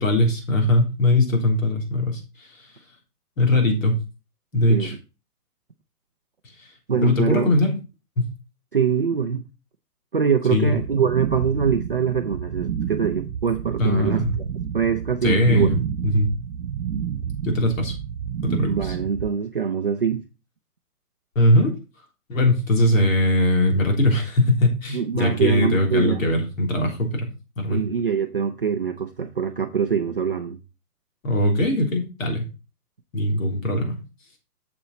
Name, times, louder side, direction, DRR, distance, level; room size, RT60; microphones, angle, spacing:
voice 1, 0.0-2.2 3.4-3.9 4.5-4.9 7.0-7.7 8.2-8.3 10.5-10.7 13.8-14.3 15.2-15.8 16.0-16.3 17.4-17.9 18.4-19.0 21.4-21.7 22.3-27.3 27.6-27.8 31.2-32.4 33.1-34.0, left 1 dB, 60° left, 3.4 m, -20 dB
voice 2, 6.9-7.5 8.7-9.4 10.1-14.3 14.7-15.7 18.6-20.2 24.9-26.3 27.7-30.6, right 6 dB, 40° right, 0.5 m, -23 dB
sound 1, 10.7-19.3, right 8 dB, 70° right, 0.9 m, -30 dB
7.2 x 7.0 x 4.0 m
hypercardioid pair, 170°, 46 cm